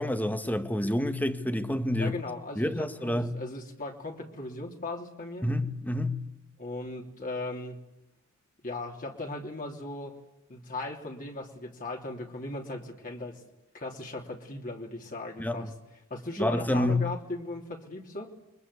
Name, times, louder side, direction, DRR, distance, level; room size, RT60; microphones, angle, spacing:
voice 1, 0.0-2.2 2.6-3.3 5.4-6.3 15.4-15.6 16.4-17.0, left 1 dB, 10° left, 1.6 m, -28 dB
voice 2, 2.0-5.5 6.6-7.8 8.6-10.1 10.5-13.4 13.7-15.7 16.1-18.3, left 2 dB, 40° left, 3.1 m, -38 dB
29.0 x 23.5 x 8.4 m
head